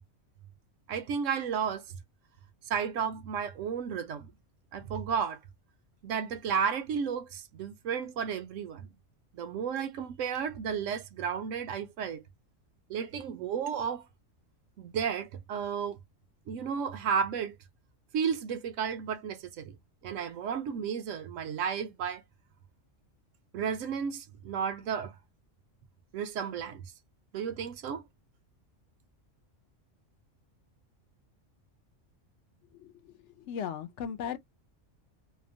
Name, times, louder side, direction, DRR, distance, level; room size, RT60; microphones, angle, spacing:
voice 1, 0.9-1.8 2.7-4.3 4.7-5.4 6.0-8.9 9.3-12.2 12.9-14.0 14.8-16.0 16.5-17.6 18.1-19.8 20.0-22.2 23.5-25.1 26.1-26.8 27.3-28.0, right 7 dB, 80° right, 1.0 m, -33 dB
voice 2, 32.7-34.4, left 8 dB, 70° left, 0.9 m, -38 dB
2.8 x 2.1 x 2.6 m
omnidirectional pair, 1.3 m